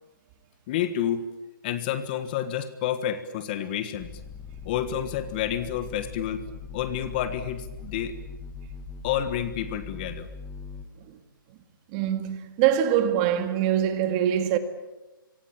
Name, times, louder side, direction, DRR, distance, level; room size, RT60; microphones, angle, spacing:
voice 1, 0.7-1.2 1.6-4.1 4.6-6.4 6.7-8.1 9.0-10.3, left 10 dB, 25° left, 1.4 m, -29 dB
sound 1, 4.0-10.9, left 4 dB, 5° left, 1.5 m, -41 dB
voice 2, 11.9-14.6, right 10 dB, 20° right, 2.0 m, -24 dB
27.0 x 24.5 x 8.8 m
hypercardioid pair, 160°, 12 cm